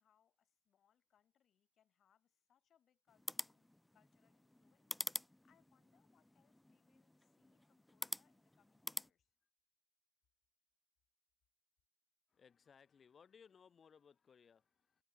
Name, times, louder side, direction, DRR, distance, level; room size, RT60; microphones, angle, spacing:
voice 1, 0.0-9.3, left 9 dB, 65° left, 7.2 m, -78 dB
sound 1, 3.1-9.1, left 1 dB, 10° left, 0.4 m, -48 dB
voice 2, 12.3-15.0, left 6 dB, 45° left, 1.3 m, -65 dB
cardioid pair, 90°, 0 cm